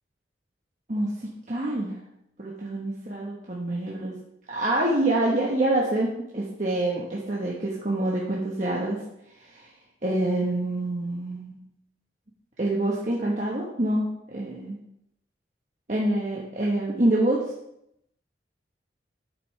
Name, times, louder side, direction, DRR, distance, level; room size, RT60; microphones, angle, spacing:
voice 1, 0.9-2.0 2.4-4.1 4.5-9.0 9.5-9.7 10.0-11.6 12.6-14.8 15.9-17.4, right 1 dB, 40° right, -4 dB, 1.3 m, -26 dB
9.8 x 7.7 x 3.3 m, 0.80 s
head